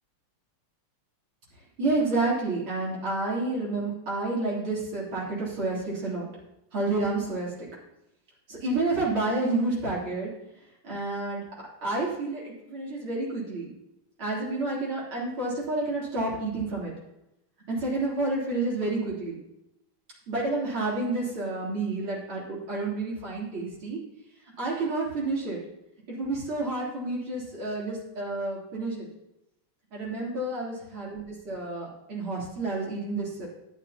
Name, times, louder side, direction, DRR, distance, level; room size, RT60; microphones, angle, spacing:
voice 1, 1.8-6.3 6.7-7.7 8.5-10.3 10.8-11.4 11.8-13.7 14.2-16.9 17.7-19.4 20.3-24.0 24.6-25.6 26.1-29.1 29.9-33.5, right 2 dB, 70° right, -6 dB, 4.2 m, -29 dB
13.0 x 9.6 x 2.9 m, 0.87 s
omnidirectional pair, 2.4 m